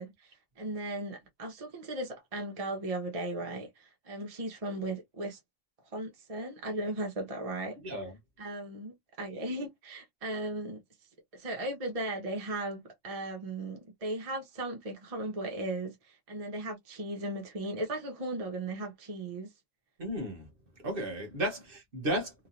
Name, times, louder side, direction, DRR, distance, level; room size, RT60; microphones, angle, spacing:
voice 1, 0.0-5.4 5.9-7.8 8.4-10.8 11.3-19.5, right 1 dB, 35° right, 0.8 m, -37 dB
voice 2, 7.8-8.2 20.0-20.5 20.8-22.3, equal, 50° right, 1.2 m, -34 dB
3.0 x 2.4 x 2.5 m
omnidirectional pair, 1.2 m